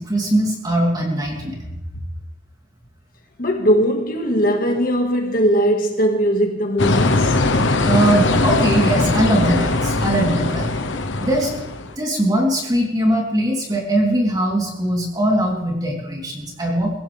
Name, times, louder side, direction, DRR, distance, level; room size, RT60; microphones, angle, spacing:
voice 1, 0.0-1.7 7.9-10.7 11.2-11.5 12.0-17.0, right 1 dB, 20° right, 3.7 m, -20 dB
voice 2, 3.4-7.4, equal, 45° left, 2.1 m, -19 dB
sound 1, 6.8-11.9, left 2 dB, 80° left, 1.2 m, -20 dB
24.0 x 15.5 x 3.6 m
head